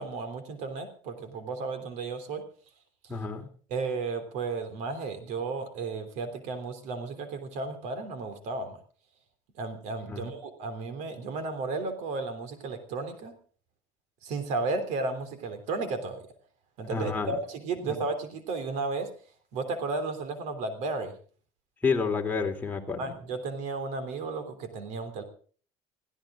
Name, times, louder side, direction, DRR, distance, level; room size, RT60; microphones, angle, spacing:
voice 1, 0.0-2.4 3.7-8.8 9.6-13.3 14.2-16.2 16.8-19.1 19.5-21.2 23.0-25.2, right 3 dB, 65° right, 9 dB, 3.3 m, -33 dB
voice 2, 3.1-3.5 10.1-10.2 16.9-17.4 17.8-17.9 21.8-23.0, left 5 dB, 15° left, 1 dB, 3.2 m, -29 dB
21.5 x 15.5 x 3.8 m, 0.43 s
cardioid pair, 135°, 13 cm